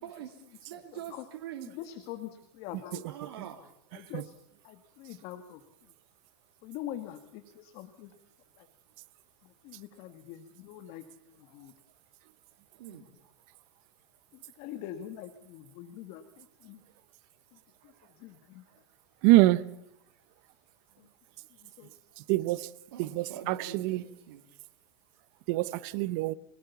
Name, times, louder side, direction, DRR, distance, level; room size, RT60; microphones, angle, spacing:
voice 1, 0.0-1.7 3.0-3.6 12.8-13.1 22.9-24.4, right 10 dB, 75° right, 2.6 m, -44 dB
voice 2, 1.7-3.0 3.9-4.3 4.6-5.6 6.6-8.1 8.6-8.7 9.4-11.0 11.4-11.7 14.3-16.8 17.8-18.6 21.0-21.1 21.6-21.9, left 12 dB, 45° left, 1.8 m, -44 dB
voice 3, 19.2-19.6 22.2-22.7 23.0-24.0 25.5-26.3, right 17 dB, 50° right, 0.9 m, -25 dB
25.0 x 18.0 x 7.1 m
supercardioid pair, 145°, 14 cm